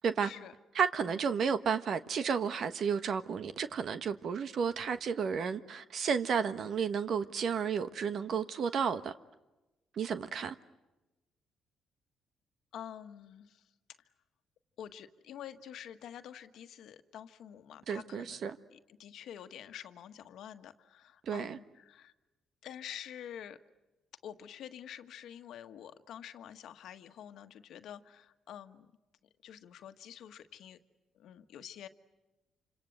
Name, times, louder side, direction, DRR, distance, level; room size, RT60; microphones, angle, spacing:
voice 1, 0.2-0.5 1.0-1.1 12.7-13.6 14.8-22.1 22.6-23.6 24.2-28.9 29.4-30.8 31.1-31.9, left 10 dB, 75° left, 1.5 m, -48 dB
voice 2, 0.7-9.1 9.9-10.5 17.9-18.6 21.2-21.6, right 6 dB, 60° right, 1.2 m, -32 dB
28.0 x 26.5 x 7.9 m
cardioid pair, 90°, 0 cm